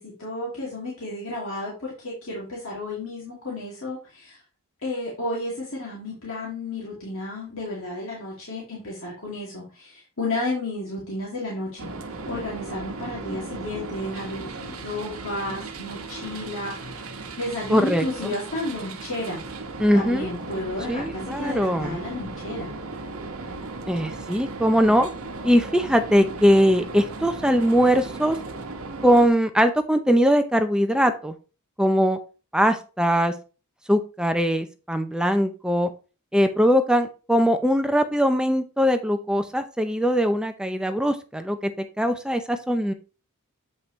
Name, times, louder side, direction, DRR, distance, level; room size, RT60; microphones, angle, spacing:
voice 1, 0.0-4.4 4.8-11.9 12.3-19.4 19.9-22.8, left 2 dB, 65° left, -4 dB, 2.4 m, -32 dB
sound 1, 11.8-29.3, right 3 dB, 80° right, 1.1 m, -36 dB
voice 2, 17.7-18.3 19.8-20.3 20.9-22.0 23.9-25.1 25.4-28.4 29.0-31.3 31.8-32.2 32.5-33.3 33.9-35.9 36.3-42.9, equal, 5° right, 7 dB, 0.5 m, -21 dB
8.2 x 5.4 x 3.1 m, 0.34 s
head